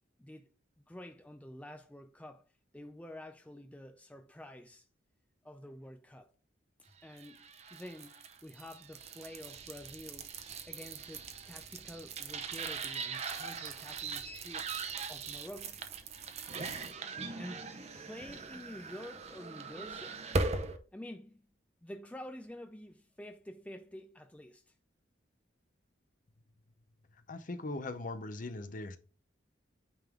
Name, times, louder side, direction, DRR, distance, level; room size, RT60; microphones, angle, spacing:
voice 1, 0.9-2.4 2.7-4.9 5.4-6.3 7.0-8.1 8.4-10.3 10.7-14.6 15.1-15.8 17.4-17.7 17.9-20.2 20.9-21.4 21.8-24.7, left 1 dB, 5° left, 0.4 m, -48 dB
sound 1, 7.1-20.8, right 4 dB, 35° right, 0.7 m, -40 dB
voice 2, 27.3-29.0, left 2 dB, 45° left, 0.6 m, -40 dB
8.9 x 3.7 x 3.6 m
head